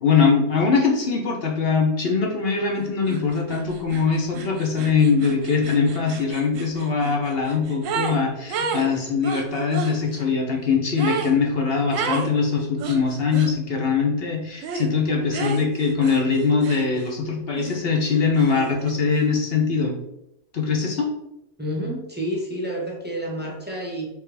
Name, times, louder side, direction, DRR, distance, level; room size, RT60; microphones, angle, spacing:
voice 1, 0.0-20.0 20.5-21.1, left 5 dB, 50° left, 0 dB, 0.9 m, -22 dB
sound 1, 3.1-3.2 3.5-8.2 8.5-10.0 11.0-11.4 11.9-12.3 12.8-13.5 14.6-14.9 15.3-17.2 17.6-18.9, right 5 dB, 65° right, 0.9 m, -31 dB
voice 2, 21.6-24.1, equal, 10° right, -3 dB, 0.7 m, -29 dB
4.7 x 3.3 x 3.4 m, 0.83 s
omnidirectional pair, 1.6 m